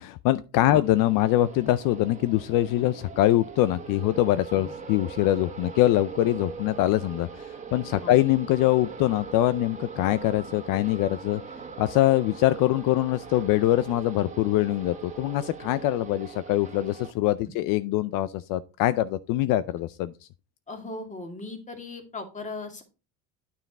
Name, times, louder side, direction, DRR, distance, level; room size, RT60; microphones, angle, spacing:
voice 1, 0.0-11.4 11.8-20.1, left 14 dB, 65° left, 0.6 m, -23 dB
sound 1, 0.8-17.1, right 5 dB, 20° right, 1.6 m, -41 dB
voice 2, 20.7-22.8, left 3 dB, 20° left, 2.2 m, -38 dB
9.5 x 5.7 x 4.1 m
cardioid pair, 120°, 35 cm